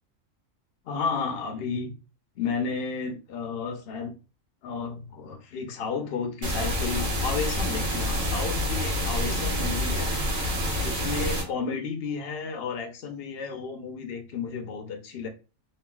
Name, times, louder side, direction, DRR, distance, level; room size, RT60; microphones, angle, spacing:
voice 1, 0.8-1.9 2.4-4.2 4.6-10.1 10.8-15.3, left 5 dB, 60° left, 0.7 m, -32 dB
sound 1, 6.4-11.4, equal, 85° right, 1.4 m, -27 dB
3.1 x 2.3 x 2.2 m
omnidirectional pair, 1.4 m